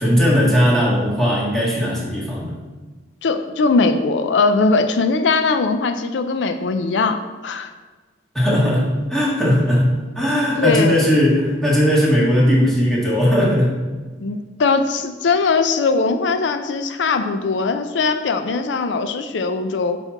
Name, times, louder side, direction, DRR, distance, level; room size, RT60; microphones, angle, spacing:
voice 1, 0.0-2.5 8.3-13.8, equal, ahead, -6 dB, 1.7 m, -18 dB
voice 2, 3.2-7.7 10.6-11.0 14.2-20.0, left 4 dB, 80° left, 8 dB, 0.4 m, -20 dB
5.7 x 4.3 x 5.8 m, 1.3 s
head